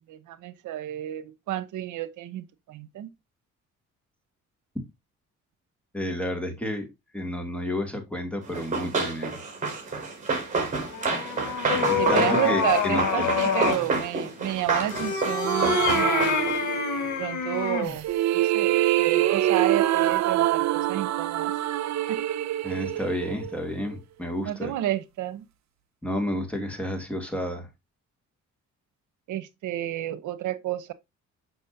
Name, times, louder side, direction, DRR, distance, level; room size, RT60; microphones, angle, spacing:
voice 1, 0.1-3.1 12.0-16.4 17.2-18.1 18.3-21.5 22.1-22.2 24.4-25.4 29.3-30.9, right 13 dB, 80° right, 0.9 m, -31 dB
voice 2, 5.9-6.9 7.1-9.4 11.7-13.3 22.6-24.7 26.0-27.7, left 1 dB, 5° left, 2.4 m, -31 dB
Run, 8.5-16.7, right 4 dB, 25° right, 4.1 m, -29 dB
sound 1, 10.9-13.9 14.8-18.0, left 6 dB, 70° left, 1.7 m, -27 dB
sound 2, 15.4-17.1 17.8-23.9, right 14 dB, 65° right, 0.6 m, -25 dB
7.1 x 6.1 x 2.7 m
cardioid pair, 90°, 30 cm